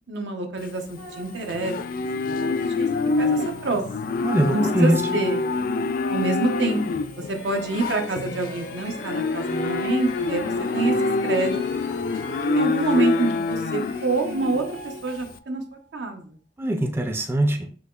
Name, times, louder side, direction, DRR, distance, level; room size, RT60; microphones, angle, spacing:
voice 1, 0.1-1.7 2.3-2.9 3.2-3.8 4.5-5.5 6.1-7.0 7.3-10.9 11.2-11.6 12.3-15.6 15.9-16.4, right 2 dB, 75° right, 4 dB, 0.8 m, -27 dB
Livestock farm animals working animals, 0.6-15.3, left 3 dB, 50° left, 0.3 m, -26 dB
sound 1, 0.9-1.6 2.3-5.5 6.4-8.9 9.6-12.6 13.9-15.0, equal, 45° right, 1.0 m, -44 dB
voice 2, 4.2-5.2 16.6-17.7, right 1 dB, 15° right, 4 dB, 0.4 m, -22 dB
sound 2, 7.2-15.9, left 2 dB, 75° left, 0.7 m, -40 dB
6.2 x 2.8 x 2.3 m, 0.42 s
head